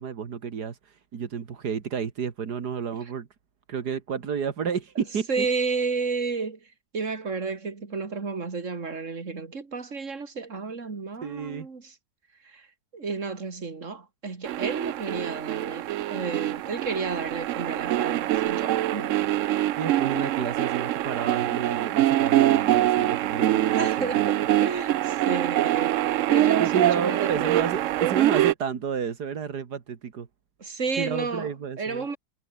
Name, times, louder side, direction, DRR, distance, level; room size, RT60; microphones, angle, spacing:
voice 1, 0.0-3.3 3.7-5.5 11.2-11.7 19.8-24.3 26.6-30.3 31.0-32.1, right 6 dB, 85° right, 2.3 m, -31 dB
voice 2, 5.3-6.6 6.9-11.9 12.4-12.7 12.9-19.3 23.6-27.7 30.6-31.5 31.8-32.2, right 4 dB, 50° right, 3.1 m, -32 dB
sound 1, 14.4-28.5, right 14 dB, 65° right, 0.8 m, -24 dB
omnidirectional pair, 1.7 m